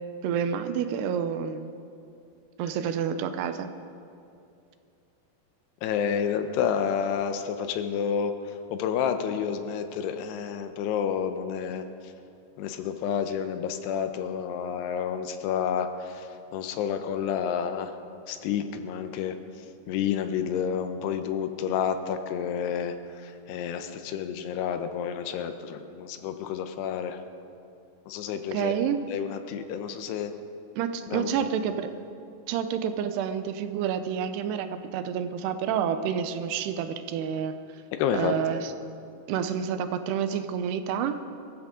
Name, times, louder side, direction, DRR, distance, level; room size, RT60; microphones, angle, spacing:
voice 1, 0.2-1.7 2.6-3.7 28.5-29.0 30.8-31.9 32.5-37.5 38.1-38.7 39.3-41.2, right 8 dB, 80° right, 9 dB, 2.7 m, -29 dB
voice 2, 5.8-8.3 8.7-11.8 12.6-16.3 16.5-17.9 18.3-19.3 19.9-27.2 28.1-28.7 29.1-30.3 31.1-31.3 38.0-38.3, left 8 dB, 80° left, 8 dB, 2.8 m, -29 dB
23.0 x 14.0 x 3.7 m, 2.6 s
omnidirectional pair, 4.9 m